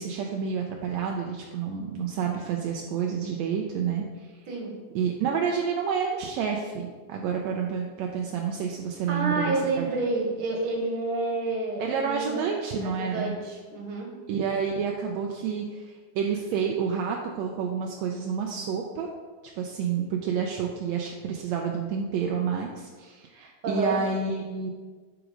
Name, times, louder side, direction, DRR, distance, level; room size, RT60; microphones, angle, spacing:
voice 1, 0.0-4.0 4.9-9.9 11.8-13.3 14.3-19.1 19.5-24.7, right 6 dB, 80° right, 1 dB, 1.7 m, -29 dB
voice 2, 9.1-12.4 12.8-14.1 23.6-24.0, right 3 dB, 50° right, -1 dB, 2.2 m, -29 dB
8.0 x 4.9 x 5.2 m, 1.4 s
omnidirectional pair, 3.4 m